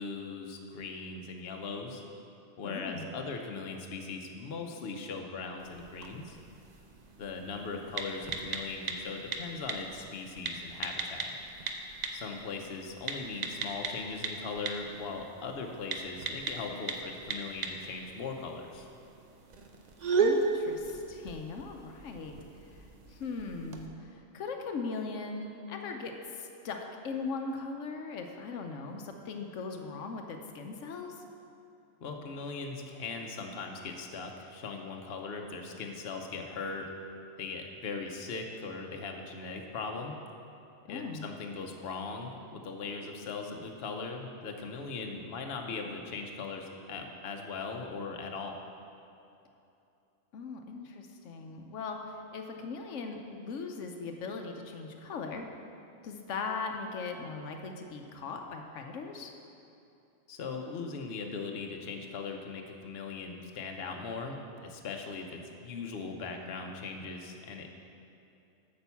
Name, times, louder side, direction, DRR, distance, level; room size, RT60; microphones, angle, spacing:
voice 1, 0.0-2.0 2.6-6.4 7.2-11.3 12.1-18.9 32.0-36.9 37.4-40.2 40.9-48.6 60.3-67.8, left 4 dB, 60° left, 2 dB, 1.0 m, -39 dB
voice 2, 2.6-3.1 20.2-22.3 22.6-22.8 23.1-31.2 40.9-41.3 50.3-55.5 56.0-59.3, left 4 dB, 85° left, 3 dB, 1.1 m, -39 dB
sound 1, 5.6-23.9, right 4 dB, 45° right, 0.6 m, -37 dB
8.8 x 5.4 x 7.0 m, 2.8 s
omnidirectional pair, 1.3 m